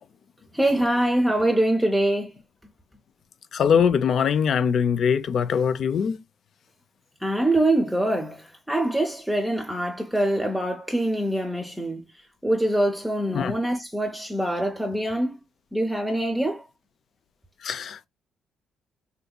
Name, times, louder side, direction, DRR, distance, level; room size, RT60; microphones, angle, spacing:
voice 1, 0.5-2.3 7.2-12.0 12.4-15.4 15.7-16.6, right 1 dB, 5° right, 0.7 m, -24 dB
voice 2, 3.5-6.2 13.3-13.5 17.6-18.1, left 7 dB, 60° left, 0.4 m, -22 dB
3.7 x 2.7 x 2.2 m
cardioid pair, 90°, 0 cm